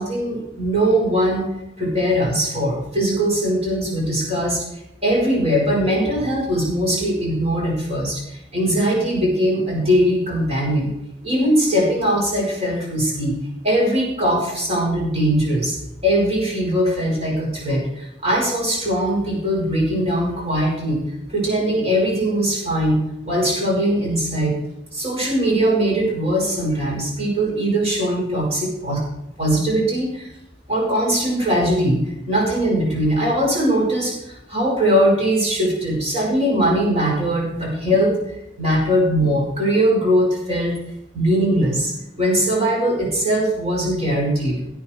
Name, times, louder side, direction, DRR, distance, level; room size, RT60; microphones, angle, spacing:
voice 1, 0.0-1.4 1.8-4.6 5.0-10.9 11.2-13.4 13.6-15.8 16.0-21.0 21.3-23.0 23.2-24.5 24.9-29.0 29.4-30.3 30.7-38.2 38.6-40.8 41.1-44.6, equal, 35° right, -3 dB, 5.8 m, -20 dB
16.5 x 8.9 x 4.7 m, 0.86 s
head